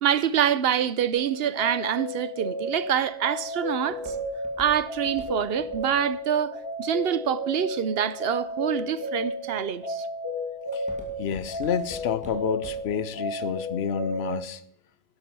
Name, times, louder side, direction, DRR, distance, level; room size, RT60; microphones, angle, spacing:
voice 1, 0.0-4.1 4.6-10.1, right 9 dB, 75° right, 0.9 m, -26 dB
sound 1, 1.1-14.4, equal, 20° left, 6.8 m, -33 dB
Walk footsteps, 2.8-7.9 8.5-9.0 9.5-9.8 10.2-13.0 13.4-13.5, equal, 5° right, 2.6 m, -46 dB
voice 2, 11.2-14.6, left 8 dB, 80° left, 0.9 m, -29 dB
12.0 x 12.0 x 5.5 m
omnidirectional pair, 1.0 m